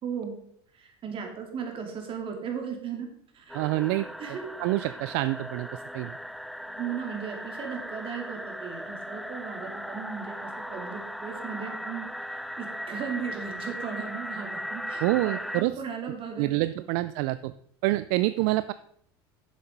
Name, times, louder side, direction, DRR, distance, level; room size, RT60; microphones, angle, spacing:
voice 1, 0.0-0.3 0.7-3.1 3.3-3.6 4.2-4.5 6.7-16.8, right 7 dB, 40° right, 3 dB, 2.6 m, -37 dB
sound 1, 3.5-15.6, equal, ahead, 0.3 m, -38 dB
voice 2, 3.5-6.1 15.0-15.7 16.4-17.5 17.8-18.7, right 18 dB, 65° right, 14 dB, 0.4 m, -27 dB
7.5 x 7.1 x 5.2 m, 0.67 s
supercardioid pair, 100°, 13 cm